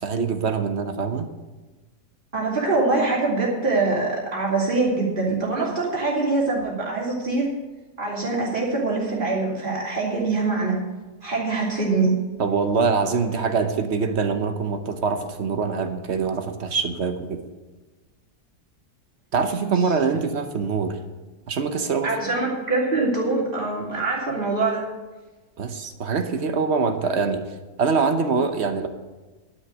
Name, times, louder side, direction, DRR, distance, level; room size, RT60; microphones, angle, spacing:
voice 1, 0.0-1.3 12.4-17.4 19.3-21.0 21.5-22.1 25.6-27.4 27.8-28.9, right 5 dB, 50° right, 8 dB, 1.1 m, -24 dB
voice 2, 2.3-7.5 8.0-10.7 11.2-12.1 19.6-19.8 22.0-24.8, right 3 dB, 30° right, -4 dB, 3.2 m, -24 dB
11.5 x 6.4 x 7.9 m, 1.2 s
omnidirectional pair, 1.7 m